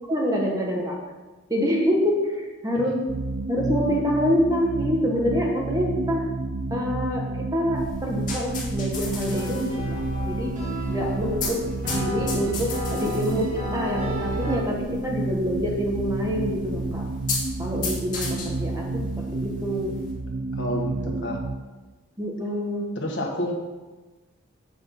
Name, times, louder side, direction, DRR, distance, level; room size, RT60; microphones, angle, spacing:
voice 1, 0.1-1.0 1.5-3.0 3.5-6.2 6.7-10.5 10.9-11.6 11.9-17.0 17.6-19.0 19.3-19.9 21.1-21.2 22.2-22.9, equal, 15° right, -2 dB, 1.3 m, -26 dB
sound 1, 3.1-21.6, right 2 dB, 70° right, 0.6 m, -30 dB
sound 2, 7.8-20.2, left 3 dB, 35° left, 2.3 m, -36 dB
sound 3, 9.3-14.6, left 1 dB, 35° right, 2.3 m, -34 dB
voice 2, 20.5-21.4 23.0-23.5, left 1 dB, 55° left, -1 dB, 1.6 m, -29 dB
7.8 x 6.1 x 5.9 m, 1.2 s
head